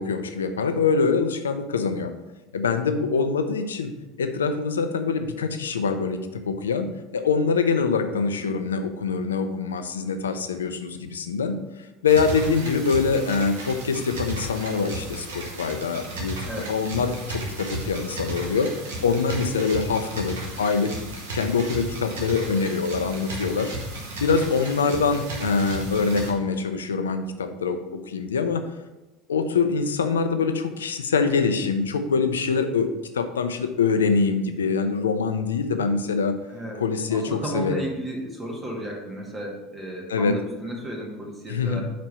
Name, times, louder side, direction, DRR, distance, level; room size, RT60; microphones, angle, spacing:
voice 1, 0.0-2.1 2.5-3.9 4.2-11.5 12.0-18.7 19.0-20.9 21.3-23.7 24.2-27.8 28.1-28.6 29.3-32.9 33.1-36.4 36.8-37.9 40.1-40.4 41.5-41.8, left 5 dB, 90° left, 8 dB, 0.5 m, -24 dB
sound 1, 12.0-26.3, right 1 dB, 80° right, 1.6 m, -34 dB
voice 2, 36.4-36.8 37.1-41.8, right 1 dB, 20° right, -2 dB, 2.1 m, -34 dB
5.1 x 4.5 x 5.5 m, 1.0 s
hypercardioid pair, 80°, 0 cm